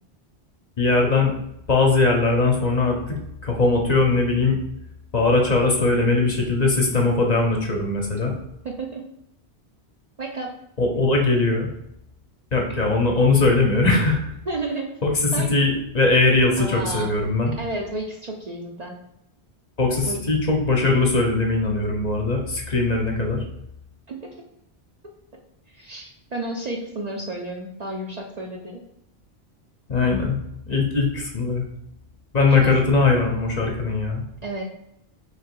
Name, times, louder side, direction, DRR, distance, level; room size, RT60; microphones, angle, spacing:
voice 1, 0.8-1.3 1.7-3.2 3.4-4.6 5.1-8.3 10.8-11.7 12.5-14.3 15.0-17.5 19.8-23.4 29.9-30.4 30.7-31.7 32.3-34.2, left 3 dB, 45° left, 1 dB, 0.7 m, -20 dB
voice 2, 8.6-9.0 10.2-10.5 14.5-14.9 15.3-15.6 16.6-17.1 17.6-18.9 20.1-20.2 24.1-24.3 25.7-28.8 32.5-32.8 34.4-34.6, right 2 dB, 50° right, 1 dB, 0.5 m, -31 dB
3.2 x 2.9 x 4.4 m, 0.78 s
omnidirectional pair, 1.1 m